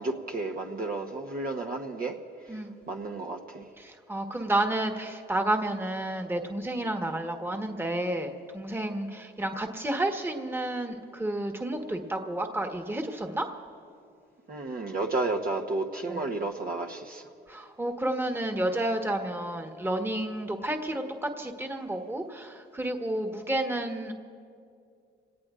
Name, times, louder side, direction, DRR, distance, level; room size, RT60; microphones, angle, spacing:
voice 1, 0.0-2.1 2.4-2.6 2.9-3.7 14.5-17.3, right 3 dB, 45° right, 2 dB, 1.1 m, -32 dB
voice 2, 3.8-13.5 16.1-16.3 17.5-24.1, right 1 dB, 10° right, 4 dB, 1.4 m, -31 dB
26.5 x 18.5 x 2.5 m, 2.4 s
cardioid pair, 90°, 20 cm